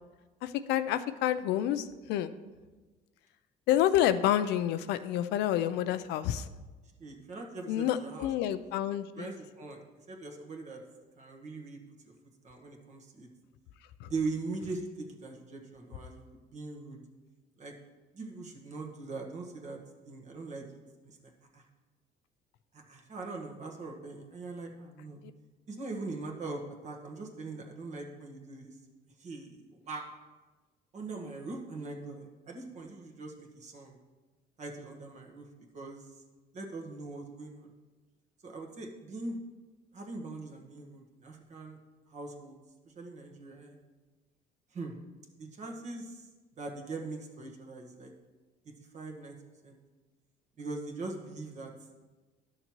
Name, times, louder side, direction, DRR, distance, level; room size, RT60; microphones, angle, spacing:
voice 1, 0.4-2.3 3.7-6.5 7.7-9.3 14.0-14.1, left 11 dB, 85° left, 12 dB, 0.5 m, -29 dB
voice 2, 7.0-8.3 9.2-9.8 10.1-10.8 11.2-12.1 12.4-13.3 14.0-17.0 17.6-17.8 18.1-19.8 20.0-20.6 21.0-21.6 22.7-25.2 25.7-28.8 29.2-30.2 30.9-34.0 34.6-35.5 35.7-36.1 36.5-37.7 38.4-39.4 39.9-41.8 42.1-42.6 42.8-43.8 44.7-45.0 45.4-46.3 46.6-48.1 48.6-49.4 49.6-49.8 50.6-51.7, right 3 dB, 45° right, 2 dB, 1.4 m, -41 dB
12.0 x 6.5 x 3.1 m, 1.2 s
cardioid pair, 110°, 17 cm